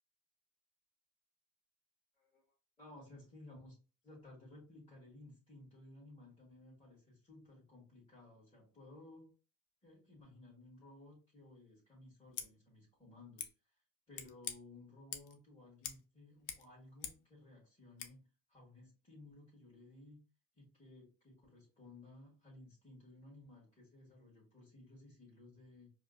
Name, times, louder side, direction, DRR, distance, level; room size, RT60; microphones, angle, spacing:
voice 1, 2.8-3.8 4.0-9.3 9.8-13.8 14.1-20.2 20.5-25.9, left 2 dB, 15° left, -6 dB, 1.7 m, -58 dB
Scissors, 12.3-12.5 13.4-13.5 14.1-14.6 15.1-15.4 15.8-16.1 16.3-17.3 18.0-18.1, left 8 dB, 80° left, 0.7 m, -45 dB
4.7 x 2.1 x 2.5 m, 0.34 s
cardioid pair, 105°, 38 cm